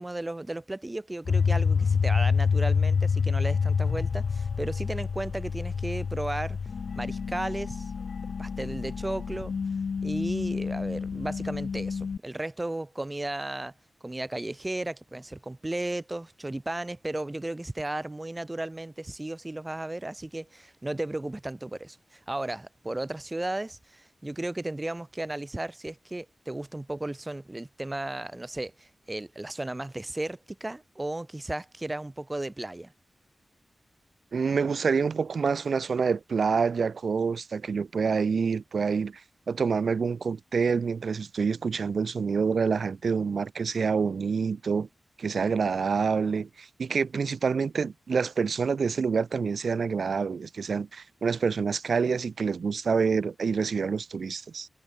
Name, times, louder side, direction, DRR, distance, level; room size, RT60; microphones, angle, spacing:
voice 1, 0.0-6.6 6.9-7.9 8.4-9.6 10.0-13.7 14.0-32.9, right 2 dB, 20° right, 4.6 m, -34 dB
sound 1, 1.3-12.2, left 5 dB, 75° left, 4.8 m, -28 dB
voice 2, 34.3-39.2 39.5-44.9 45.2-54.7, right 5 dB, 75° right, 1.4 m, -27 dB
wide cardioid pair, 85°, 0 cm